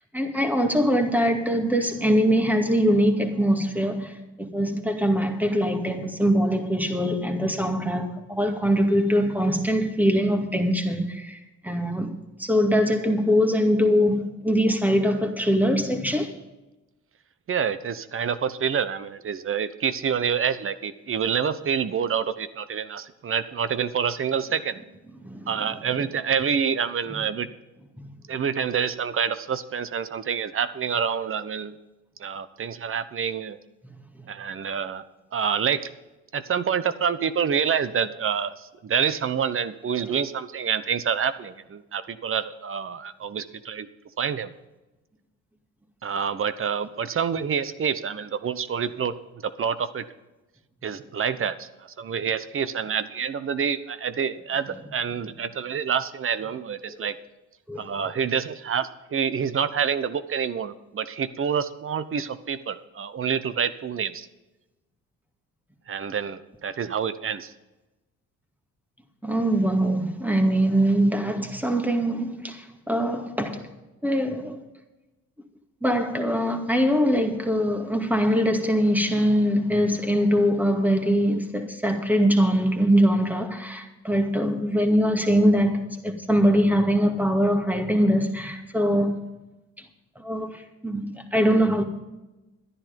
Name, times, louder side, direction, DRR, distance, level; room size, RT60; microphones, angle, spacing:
voice 1, 0.1-11.4 11.6-16.3 25.2-25.5 28.0-28.1 34.2-34.3 56.9-57.1 57.7-57.8 69.2-73.6 74.0-74.6 75.8-89.1 90.2-91.8, equal, 5° right, 2.2 m, -22 dB
voice 2, 17.5-24.8 25.5-27.5 28.3-31.8 32.2-33.6 34.3-35.0 35.3-35.9 36.3-43.9 44.2-44.5 46.0-49.1 49.4-50.1 50.8-57.1 57.8-64.3 65.9-67.5, right 7 dB, 45° right, 1.0 m, -27 dB
12.5 x 10.5 x 5.3 m
cardioid pair, 90°, 30 cm